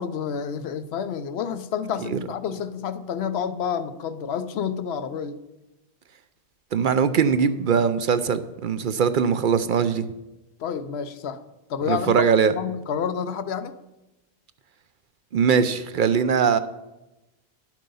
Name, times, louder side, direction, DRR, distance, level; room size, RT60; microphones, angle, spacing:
voice 1, 0.0-5.4 10.6-11.4 11.7-12.3 12.5-13.7, left 7 dB, 80° left, 12 dB, 0.9 m, -29 dB
voice 2, 6.7-10.1 11.9-12.5 15.3-16.6, right 6 dB, 60° right, 12 dB, 0.6 m, -21 dB
10.5 x 7.5 x 5.4 m, 0.98 s
omnidirectional pair, 1.1 m